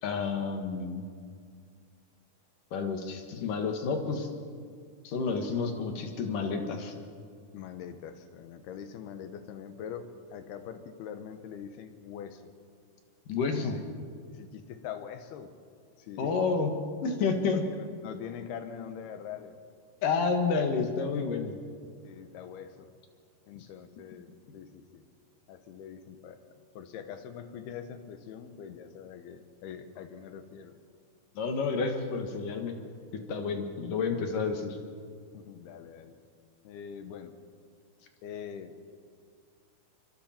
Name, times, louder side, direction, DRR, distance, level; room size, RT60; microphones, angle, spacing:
voice 1, 0.0-1.1 2.7-4.3 5.0-6.9 13.3-13.8 16.2-17.6 20.0-21.6 31.4-32.7 33.1-34.8, left 4 dB, 60° left, 4 dB, 2.9 m, -30 dB
voice 2, 7.5-12.4 13.5-13.7 14.3-15.5 16.0-16.3 17.3-19.6 22.0-23.0 23.5-25.1 25.5-30.8 33.4-33.6 35.3-36.2 36.6-37.4 38.2-38.7, left 8 dB, 75° left, 9 dB, 3.1 m, -43 dB
27.5 x 24.0 x 4.4 m, 2.1 s
omnidirectional pair, 4.7 m